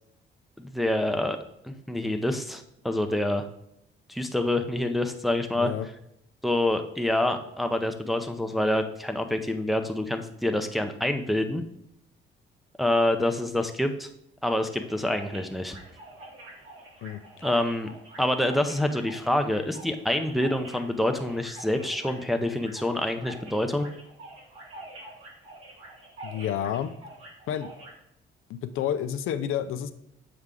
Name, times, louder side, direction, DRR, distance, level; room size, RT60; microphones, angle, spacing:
voice 1, 0.6-1.4 1.6-3.5 4.1-5.7 6.4-11.6 12.8-14.1 14.4-15.8 17.4-17.9 18.2-23.9, left 1 dB, ahead, 5 dB, 0.5 m, -27 dB
voice 2, 5.5-5.9 17.0-17.2 26.2-26.9 27.5-27.7 28.5-29.9, left 10 dB, 85° left, 11 dB, 0.5 m, -30 dB
sound 1, 14.8-27.9, right 2 dB, 85° right, 2.1 m, -46 dB
6.8 x 4.7 x 3.7 m, 0.79 s
cardioid pair, 115°, 21 cm